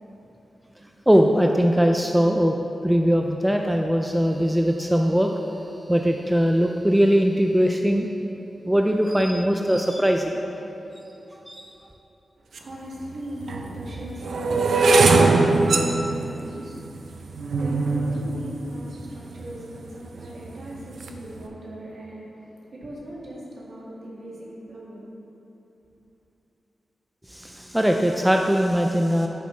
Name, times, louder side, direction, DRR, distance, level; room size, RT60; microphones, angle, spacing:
voice 1, 1.1-2.6 2.8-5.3 5.9-8.1 8.6-10.4 11.3-11.6 27.3-29.3, equal, 5° right, 2 dB, 0.3 m, -20 dB
voice 2, 12.4-25.1, right 1 dB, 55° right, -5 dB, 1.9 m, -39 dB
sound 1, 12.6-12.7 13.4-19.6 20.2-20.6 20.8-21.2, right 3 dB, 80° right, 0.5 m, -21 dB
10.5 x 6.9 x 3.2 m, 2.9 s
wide cardioid pair, 140°, 0 cm